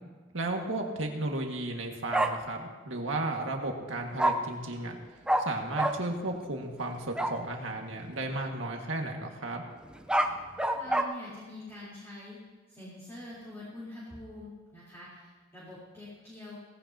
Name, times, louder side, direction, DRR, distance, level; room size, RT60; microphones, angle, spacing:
voice 1, 0.3-5.0 5.4-9.6, right 2 dB, 80° right, 2 dB, 1.8 m, -34 dB
Bark, 2.1-2.3 4.2-4.3 5.3-5.4 5.8-5.9 7.1-7.3 9.9-11.0, right 1 dB, 5° right, 0.7 m, -26 dB
voice 2, 10.8-12.4 12.7-16.6, left 1 dB, 15° left, -9 dB, 3.7 m, -45 dB
18.5 x 16.5 x 2.9 m, 1.4 s
head